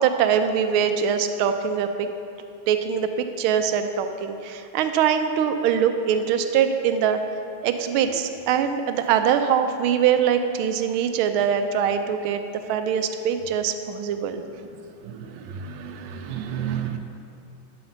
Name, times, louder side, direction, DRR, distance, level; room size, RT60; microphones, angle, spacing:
voice 1, 0.0-2.1 2.7-7.2 7.6-12.4 12.7-14.4, right 8 dB, 85° right, 7 dB, 1.4 m, -23 dB
voice 2, 15.6-17.0, right 9 dB, 70° right, 6 dB, 1.2 m, -31 dB
9.2 x 5.7 x 6.5 m, 2.6 s
omnidirectional pair, 2.3 m